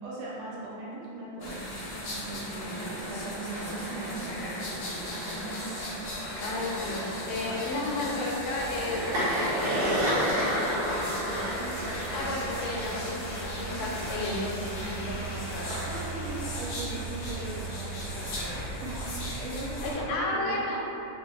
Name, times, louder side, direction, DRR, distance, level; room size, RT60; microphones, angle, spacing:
voice 1, 0.0-1.7 2.0-5.1 15.9-19.1 19.4-20.7, right 2 dB, 85° right, -7 dB, 1.6 m, -39 dB
sound 1, 1.4-20.0, equal, 65° left, 1.0 m, -37 dB
sound 2, 2.5-19.4, equal, 65° right, 1.1 m, -34 dB
voice 2, 6.4-9.8 10.6-11.6 12.1-15.8 19.8-20.8, left 2 dB, 80° left, -3 dB, 1.4 m, -33 dB
3.6 x 2.1 x 2.9 m, 2.9 s
omnidirectional pair, 2.3 m